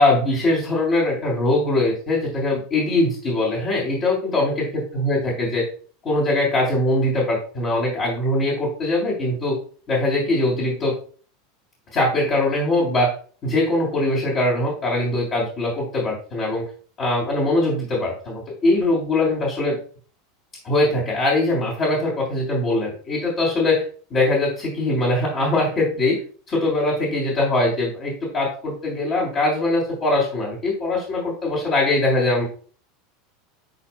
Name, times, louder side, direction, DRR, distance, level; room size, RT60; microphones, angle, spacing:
voice 1, 0.0-5.6 6.0-9.6 9.9-10.9 11.9-13.1 13.4-16.6 17.0-19.8 20.6-23.8 24.1-26.2 26.5-32.5, left 2 dB, 40° left, -7 dB, 3.3 m, -21 dB
11.5 x 4.1 x 2.2 m, 0.42 s
figure-of-eight pair, 80°, 0 cm